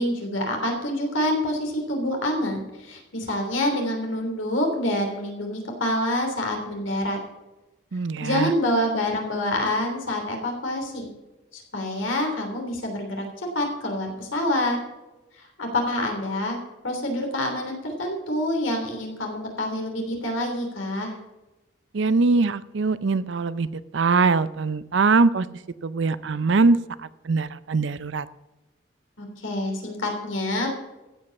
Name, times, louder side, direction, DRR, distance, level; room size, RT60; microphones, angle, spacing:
voice 1, 0.0-7.2 8.2-11.1 11.5-14.8 15.4-16.6 16.8-21.1 29.2-30.7, left 1 dB, 80° left, 3 dB, 3.2 m, -27 dB
voice 2, 7.9-8.5 21.9-23.7 23.9-25.5 25.8-26.8 27.2-28.3, right 4 dB, 65° right, 16 dB, 0.5 m, -22 dB
15.5 x 5.5 x 7.1 m, 1.0 s
head